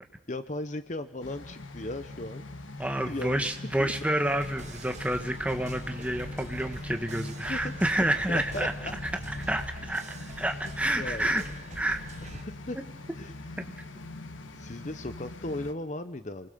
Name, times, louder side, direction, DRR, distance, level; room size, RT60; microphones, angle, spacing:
voice 1, 0.3-2.5 2.7-3.5 3.8-3.9 6.8-6.9 7.5-7.7 8.3-8.9 10.6-11.4 12.2-12.8 13.2-13.3 14.6-16.5, left 2 dB, 35° left, 11 dB, 0.8 m, -37 dB
sound 1, 1.2-15.7, left 2 dB, 80° left, 1.4 m, -42 dB
voice 2, 2.8-8.7 9.0-11.4 11.8-12.0 13.6-13.7, right 1 dB, 5° right, 6 dB, 1.3 m, -29 dB
sound 2, 4.3-12.4, right 2 dB, 35° right, 1.3 m, -44 dB
28.0 x 20.0 x 6.8 m, 0.81 s
head